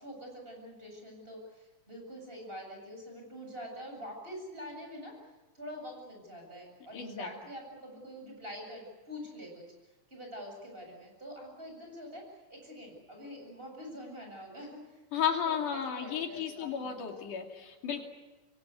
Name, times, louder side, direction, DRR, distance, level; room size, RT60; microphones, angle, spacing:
voice 1, 0.0-9.7 10.1-15.0 15.4-17.1, equal, 15° right, 1 dB, 7.9 m, -45 dB
voice 2, 6.9-7.3 15.1-18.1, left 8 dB, 75° left, 3 dB, 4.1 m, -33 dB
27.0 x 23.5 x 8.3 m, 1.1 s
omnidirectional pair, 3.6 m